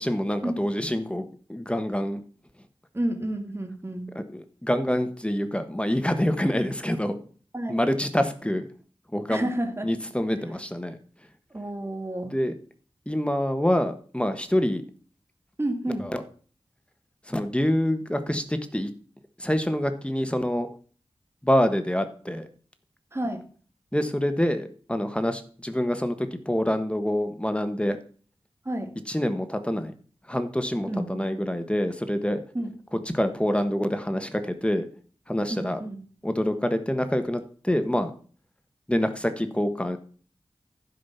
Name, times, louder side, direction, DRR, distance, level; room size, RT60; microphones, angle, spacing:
voice 1, 0.0-2.2 4.1-7.2 7.7-8.7 9.1-9.5 9.8-11.0 12.3-12.5 13.1-14.8 16.0-16.2 17.3-18.9 19.4-20.7 21.4-22.5 23.9-28.0 29.1-29.9 30.3-32.4 33.1-34.9 35.3-35.8 36.2-38.1 38.9-40.0, equal, 10° left, 9 dB, 1.3 m, -26 dB
voice 2, 2.9-4.1 7.5-7.8 9.3-9.9 11.5-12.3 15.6-16.1 23.1-23.5 28.7-28.9 30.8-31.3 32.5-32.7 35.5-36.0, right 1 dB, 25° right, 5 dB, 2.1 m, -30 dB
12.0 x 5.0 x 5.7 m, 0.42 s
wide cardioid pair, 50°, 11 cm